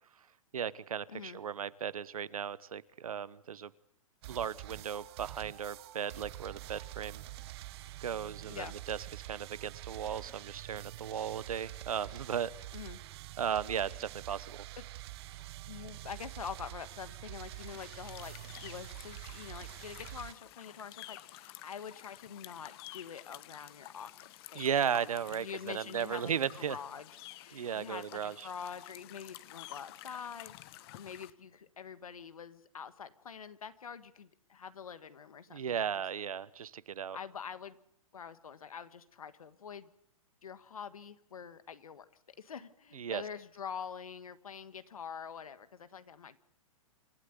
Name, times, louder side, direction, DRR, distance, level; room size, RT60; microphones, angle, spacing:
voice 1, 0.5-3.7 4.2-7.2 8.0-9.0 9.2-12.5 13.4-14.7 24.5-26.8 27.5-28.5 35.5-37.2 42.9-43.2, right 8 dB, 80° right, 19 dB, 1.0 m, -36 dB
voice 2, 1.1-1.4 8.5-8.8 12.7-13.0 14.8-14.9 15.7-18.3 18.6-27.1 27.4-35.9 37.1-37.8 38.1-39.9 40.4-46.4, left 7 dB, 85° left, 13 dB, 1.6 m, -45 dB
sound 1, 4.2-20.3, right 15 dB, 45° right, 1.1 m, -46 dB
sound 2, 17.5-31.3, left 16 dB, 45° left, 1.1 m, -51 dB
27.5 x 13.0 x 8.3 m, 0.71 s
hypercardioid pair, 130°, 18 cm